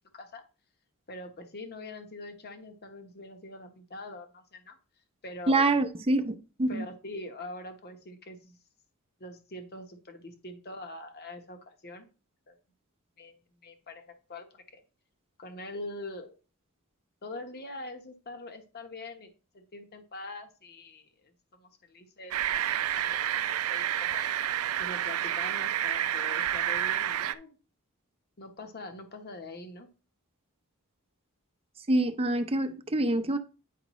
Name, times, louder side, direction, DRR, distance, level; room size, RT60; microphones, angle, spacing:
voice 1, 1.1-4.8 5.2-5.7 6.7-8.6 9.2-12.1 12.5-12.6 13.2-13.4 13.6-14.0 14.3-14.8 15.4-16.4 17.2-22.6 22.9-24.3 24.8-27.6 28.4-29.9, left 2 dB, 45° left, 1.1 m, -43 dB
voice 2, 5.5-6.9 31.9-33.4, right 2 dB, 25° right, 0.6 m, -26 dB
sound 1, 22.3-27.3, right 11 dB, 70° right, 0.4 m, -29 dB
9.3 x 5.1 x 3.1 m
head